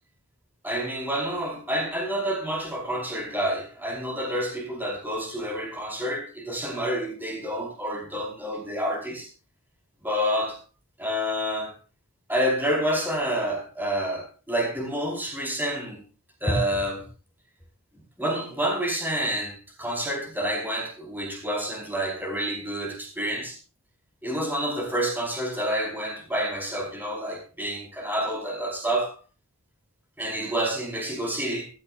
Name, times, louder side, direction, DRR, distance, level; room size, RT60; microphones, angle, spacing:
voice 1, 0.6-9.3 10.0-10.6 11.0-11.7 12.3-16.0 16.4-17.0 18.2-23.6 24.2-29.2 30.2-31.7, equal, 10° right, 4.8 m, -28 dB
16.0 x 15.0 x 2.6 m
head